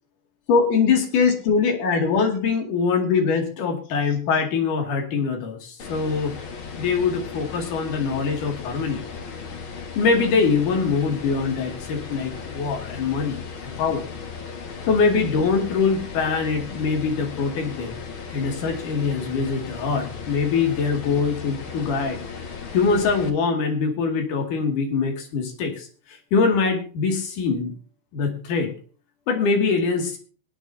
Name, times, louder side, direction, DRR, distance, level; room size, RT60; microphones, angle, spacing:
voice 1, 0.5-6.3 6.8-9.0 9.9-14.1 14.9-18.0 18.3-22.2 22.7-27.7 28.1-28.7 29.3-30.2, left 5 dB, 50° left, 4 dB, 3.3 m, -23 dB
sound 1, 5.8-23.3, left 6 dB, 85° left, 1.1 m, -36 dB
24.0 x 8.9 x 2.7 m, 0.38 s
omnidirectional pair, 5.2 m